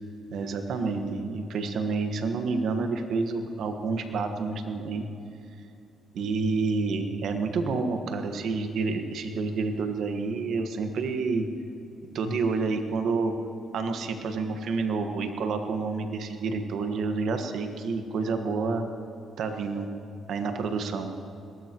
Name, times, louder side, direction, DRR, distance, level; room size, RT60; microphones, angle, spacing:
voice 1, 0.3-5.0 6.1-11.5 12.1-13.3 13.7-18.8 19.4-19.9 20.3-21.1, right 4 dB, 70° right, 5 dB, 1.5 m, -29 dB
22.0 x 19.0 x 3.1 m, 2.8 s
cardioid pair, 90°, 0 cm